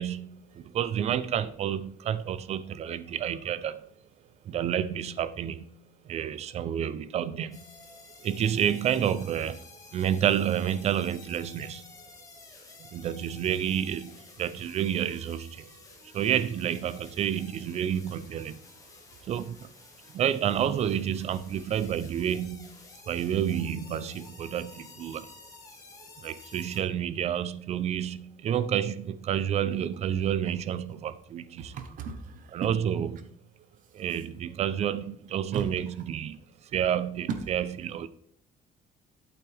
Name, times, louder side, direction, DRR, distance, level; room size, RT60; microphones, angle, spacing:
voice 1, 0.0-3.8 4.5-5.7 6.0-7.7 8.2-9.7 9.9-11.8 12.8-15.7 16.1-18.6 19.2-19.7 20.1-22.7 23.1-25.3 26.2-31.8 32.5-33.3 33.9-36.4 36.7-38.1, right 9 dB, 45° right, 0.5 m, -29 dB
sound 1, 7.5-26.8, left 3 dB, 20° left, 1.6 m, -52 dB
voice 2, 31.6-32.7 35.5-35.7 37.3-37.4, right 7 dB, 65° right, 1.1 m, -35 dB
8.5 x 8.3 x 3.4 m
cardioid pair, 175°, 15 cm